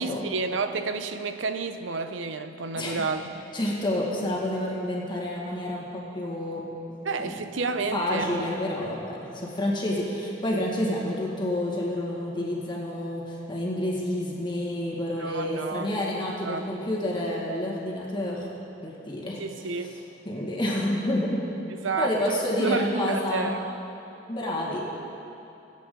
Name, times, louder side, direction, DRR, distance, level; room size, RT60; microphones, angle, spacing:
voice 1, 0.0-3.2 7.0-8.4 15.2-15.9 16.4-16.9 19.4-20.0 21.7-23.6, right 4 dB, 85° right, 9 dB, 0.7 m, -30 dB
voice 2, 3.5-6.6 7.2-7.4 7.9-18.5 18.8-19.4 19.8-19.9 20.3-21.4 22.0-23.5 24.3-24.8, left 1 dB, 25° left, -4 dB, 2.0 m, -29 dB
22.5 x 8.5 x 3.9 m, 2.9 s
head